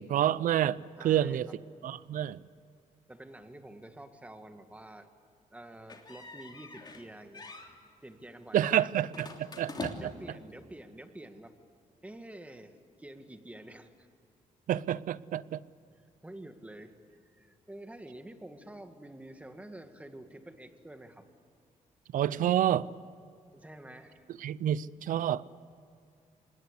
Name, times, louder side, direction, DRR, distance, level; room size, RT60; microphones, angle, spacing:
voice 1, 0.0-1.5 1.8-2.4 8.5-10.1 14.7-15.6 22.1-22.9 24.4-25.5, right 11 dB, 75° right, 19 dB, 0.6 m, -28 dB
voice 2, 1.0-1.6 3.1-5.1 5.5-7.7 8.0-8.8 10.0-11.5 12.0-14.1 15.9-17.0 17.2-21.3 23.5-24.3, right 1 dB, 10° right, 7 dB, 1.9 m, -48 dB
sound 1, 5.9-7.1 7.3-7.7 9.1-10.3, left 3 dB, 30° left, 3.1 m, -43 dB
26.0 x 20.0 x 8.3 m, 2.4 s
cardioid pair, 100°, 14 cm